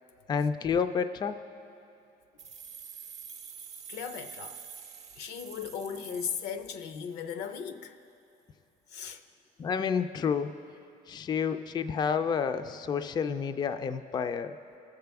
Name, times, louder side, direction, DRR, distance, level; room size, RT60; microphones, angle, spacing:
voice 1, 0.3-1.4 9.6-10.5 11.1-14.6, left 6 dB, 25° left, 9 dB, 0.3 m, -29 dB
sound 1, 2.4-7.2, right 7 dB, 45° right, 0.6 m, -47 dB
voice 2, 3.9-4.6 5.2-8.0 8.9-9.2, left 7 dB, 80° left, 9 dB, 0.6 m, -37 dB
19.5 x 6.7 x 3.5 m, 2.6 s
cardioid pair, 110°, 17 cm